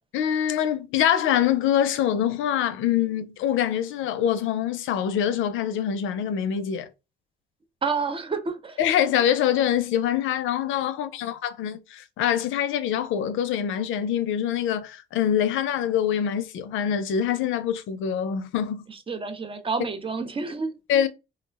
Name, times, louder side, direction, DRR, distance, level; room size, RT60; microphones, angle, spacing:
voice 1, 0.1-6.9 8.8-18.8 20.9-21.1, left 9 dB, 80° left, 0.4 m, -24 dB
voice 2, 7.8-8.8 19.1-20.8, right 4 dB, 25° right, 0.5 m, -29 dB
2.3 x 2.0 x 3.3 m
cardioid pair, 90°, 20 cm